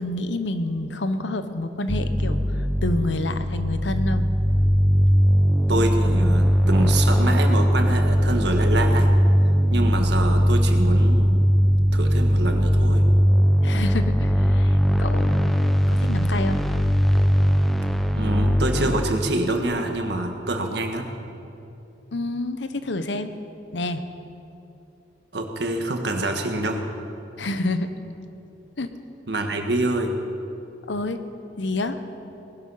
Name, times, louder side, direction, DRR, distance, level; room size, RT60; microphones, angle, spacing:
voice 1, 0.0-4.3 13.6-15.5 15.9-16.6 22.1-23.3 23.7-24.0 27.4-27.9 28.8-28.9 30.9-31.2 31.6-32.0, left 2 dB, 75° left, 10 dB, 0.9 m, -28 dB
sound 1, 1.9-19.0, equal, ahead, 0.7 m, -19 dB
voice 2, 5.7-9.1 9.7-11.4 11.9-13.0 18.1-21.1 25.3-26.8 29.3-30.1, right 1 dB, 65° right, 4 dB, 1.6 m, -26 dB
19.0 x 11.5 x 5.7 m, 2.8 s
head